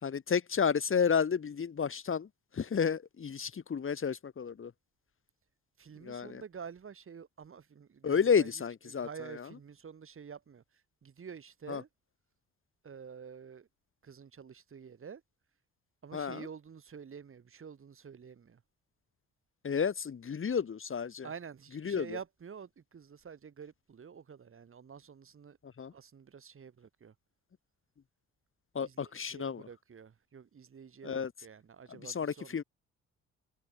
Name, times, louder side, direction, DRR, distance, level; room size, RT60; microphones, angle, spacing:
voice 1, 0.0-2.3 2.5-4.7 6.0-6.4 8.0-9.5 11.7-11.8 16.1-16.5 19.6-21.3 21.8-22.2 25.8-25.9 28.7-29.7 31.0-31.3 31.9-32.6, left 6 dB, 45° left, 3.8 m, -31 dB
voice 2, 5.8-8.5 8.9-10.6 11.0-11.9 12.8-13.7 14.0-15.2 16.0-18.6 21.2-25.6 25.9-27.1 28.8-32.6, right 6 dB, 45° right, 5.5 m, -48 dB
cardioid pair, 90°, 30 cm